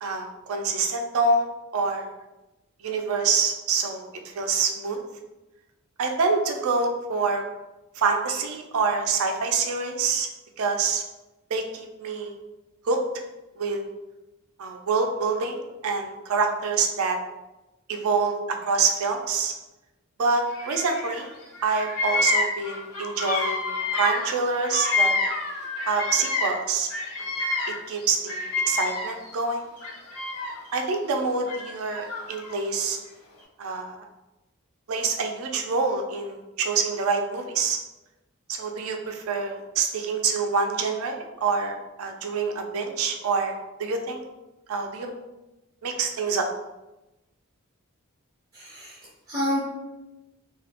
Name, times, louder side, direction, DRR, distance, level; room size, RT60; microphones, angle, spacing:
voice 1, 0.0-2.1 2.8-5.0 6.0-7.4 8.0-10.3 10.6-11.0 11.5-12.4 12.8-13.0 13.6-13.8 14.6-17.2 17.9-19.5 20.2-21.3 21.6-25.1 25.8-26.9 27.2-27.3 27.7-29.7 30.7-33.0 33.6-34.1 34.9-37.8 38.5-41.7 42.0-44.2 44.7-45.1 45.8-46.5, right 4 dB, 75° right, 4 dB, 0.4 m, -26 dB
Bird vocalization bird call bird song, 20.5-21.3 21.5-26.6 26.9-29.3 29.8-30.7 31.5-32.6, left 3 dB, 90° left, 0.5 m, -28 dB
voice 2, 48.5-49.6, equal, 15° right, -6 dB, 0.5 m, -29 dB
2.3 x 2.0 x 2.8 m, 1.0 s
head